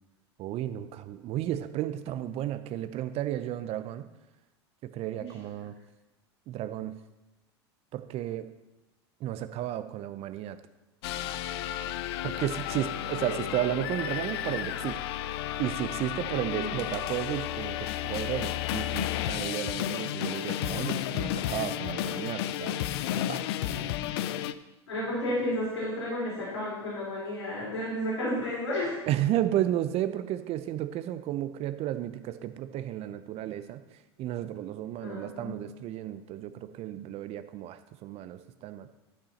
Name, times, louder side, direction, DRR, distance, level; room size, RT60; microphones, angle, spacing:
voice 1, 0.4-4.0 4.9-5.7 6.5-7.0 7.9-8.5 9.2-10.6 12.2-15.0 15.6-22.8 23.1-23.9 29.1-33.8 34.2-38.9, right 12 dB, 45° right, 12 dB, 0.8 m, -33 dB
sound 1, 11.0-24.5, left 12 dB, 65° left, 0.5 m, -32 dB
voice 2, 24.9-28.9 35.0-35.6, left 1 dB, 90° left, -6 dB, 3.6 m, -32 dB
12.0 x 5.9 x 4.3 m, 1.0 s
hypercardioid pair, 85°, 14 cm